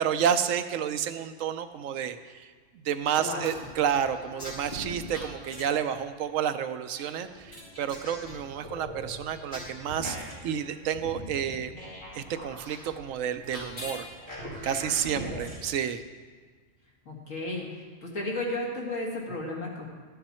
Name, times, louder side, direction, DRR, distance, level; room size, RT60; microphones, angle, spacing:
voice 1, 0.0-2.5 2.8-10.2 10.4-11.7 12.1-14.1 14.6-16.0, right 8 dB, 85° right, 10 dB, 1.0 m, -30 dB
sound 1, 3.0-5.9 6.9-15.6, equal, 40° left, 3.0 m, -41 dB
voice 2, 17.1-17.7 18.0-19.8, left 2 dB, 85° left, -2 dB, 2.5 m, -33 dB
12.5 x 9.2 x 4.3 m, 1.5 s
omnidirectional pair, 1.3 m